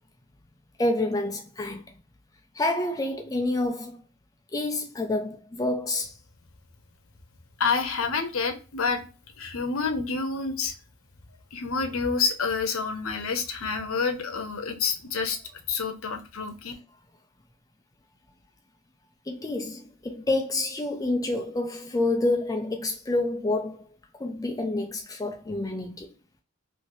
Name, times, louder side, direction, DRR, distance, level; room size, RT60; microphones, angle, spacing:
voice 1, 0.8-1.9 2.6-4.0 4.5-6.1 19.3-23.8 24.2-26.1, left 2 dB, 15° left, 0.3 m, -28 dB
voice 2, 7.6-9.0 9.4-10.7 11.5-15.4 15.7-16.7, left 5 dB, 85° left, 0.7 m, -28 dB
3.1 x 2.7 x 2.6 m
head